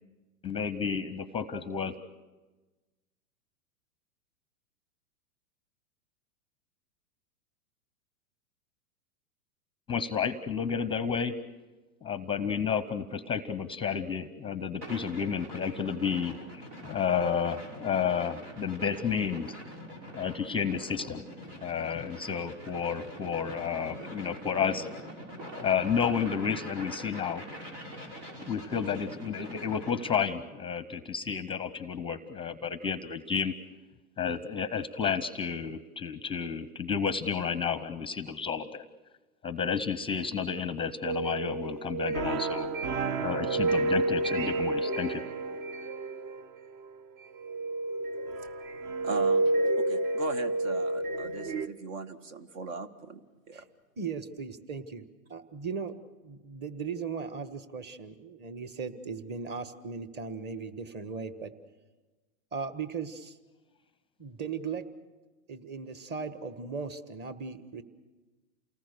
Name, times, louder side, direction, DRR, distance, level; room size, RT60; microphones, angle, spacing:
voice 1, 0.4-2.0 9.9-11.3 12.0-16.4 16.8-19.6 20.1-21.2 21.6-24.9 25.6-27.7 28.5-33.5 34.2-38.8 39.4-42.7 43.2-45.2, left 6 dB, 15° left, 14 dB, 0.6 m, -31 dB
sound 1, 14.8-30.2, equal, 85° right, 6.2 m, -44 dB
sound 2, 41.0-46.9 47.4-51.7, right 2 dB, 45° right, 1.0 m, -30 dB
voice 2, 49.0-49.4 49.8-53.7, right 3 dB, 70° right, 11 dB, 1.9 m, -39 dB
voice 3, 54.0-55.9 56.2-61.5 62.5-63.4 64.2-64.9 65.5-67.8, right 5 dB, 25° right, 11 dB, 1.4 m, -37 dB
28.5 x 19.0 x 6.8 m, 1.2 s
hypercardioid pair, 120°, 42 cm